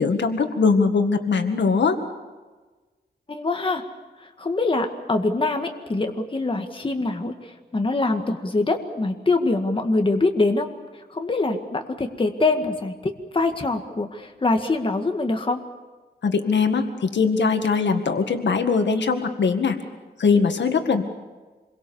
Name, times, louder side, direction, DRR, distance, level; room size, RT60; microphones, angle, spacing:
voice 1, 0.0-2.0 16.2-19.8 20.2-21.0, left 5 dB, 85° left, 6 dB, 2.0 m, -21 dB
voice 2, 3.3-3.8 4.4-10.7 11.1-15.6, left 2 dB, 30° left, 4 dB, 1.9 m, -24 dB
27.5 x 22.5 x 7.1 m, 1.3 s
wide cardioid pair, 130°, 18 cm